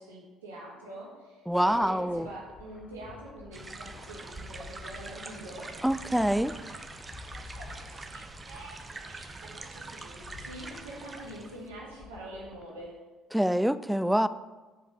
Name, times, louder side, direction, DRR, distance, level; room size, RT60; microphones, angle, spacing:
voice 1, 0.0-5.7 7.0-12.9, right 1 dB, 85° right, -4 dB, 1.4 m, -45 dB
sound 1, 1.5-12.9, left 5 dB, 45° left, 0.6 m, -51 dB
voice 2, 1.5-2.3 5.8-6.6 13.3-14.3, equal, 5° right, 14 dB, 0.3 m, -25 dB
sound 2, 3.5-11.7, right 3 dB, 25° right, 0.7 m, -44 dB
6.4 x 5.1 x 5.2 m, 1.3 s
hypercardioid pair, 55°, 0 cm